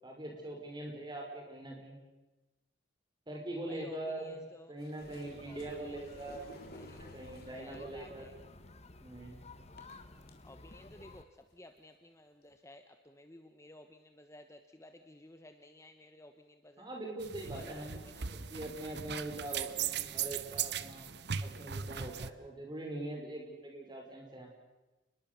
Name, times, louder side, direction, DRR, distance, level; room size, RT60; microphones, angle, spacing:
voice 1, 0.0-2.0 3.3-4.4 4.7-8.3 9.0-9.4 16.8-18.0 18.3-21.1 21.4-24.5, right 1 dB, 20° right, 1 dB, 5.4 m, -42 dB
voice 2, 3.7-4.7 5.5-7.1 7.6-8.4 10.4-16.9 17.4-18.3, left 1 dB, 15° left, 7 dB, 1.1 m, -55 dB
sound 1, 4.8-7.8 8.8-8.9 9.8-10.3 10.9-11.0 11.4-11.8 12.5-12.6, left 1 dB, 50° left, 3.6 m, -55 dB
sound 2, 5.0-11.2, left 2 dB, 30° left, 1.4 m, -53 dB
sound 3, 17.2-22.3, right 8 dB, 55° right, 0.9 m, -38 dB
29.5 x 21.0 x 6.9 m, 1.1 s
head